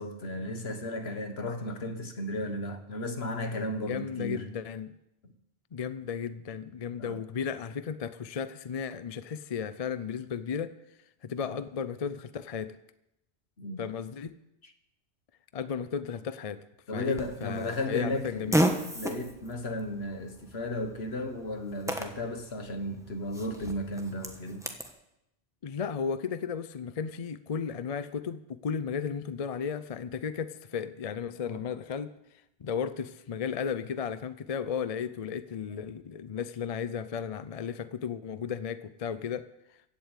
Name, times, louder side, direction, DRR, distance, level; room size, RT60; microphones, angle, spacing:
voice 1, 0.0-4.4 7.0-7.2 13.6-13.8 14.6-14.7 16.9-18.5 18.9-24.6 31.4-31.6, left 1 dB, 70° left, 1.7 m, -34 dB
voice 2, 3.9-4.9 5.7-10.7 11.2-12.8 13.8-14.4 15.5-16.6 16.9-18.6 25.6-39.5, left 7 dB, 45° left, 0.6 m, -34 dB
Fart, 17.2-24.9, equal, 5° right, 1.2 m, -34 dB
15.5 x 8.1 x 8.2 m
omnidirectional pair, 1.1 m